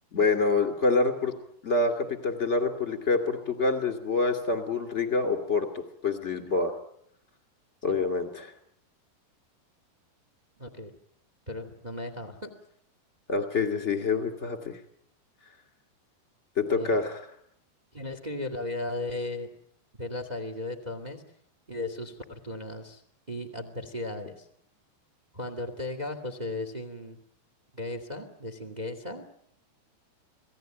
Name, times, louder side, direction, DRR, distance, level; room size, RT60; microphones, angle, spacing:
voice 1, 0.1-1.3 1.6-6.7 7.8-8.5 13.3-14.8 16.6-17.2, left 3 dB, 20° left, 6 dB, 2.0 m, -26 dB
voice 2, 10.6-10.9 11.5-12.5 16.7-17.0 17.9-19.5 20.0-21.2 21.7-23.0 23.3-24.5 25.3-27.2 27.7-29.3, left 2 dB, 20° right, 7 dB, 1.3 m, -36 dB
27.5 x 18.0 x 9.2 m, 0.71 s
omnidirectional pair, 4.9 m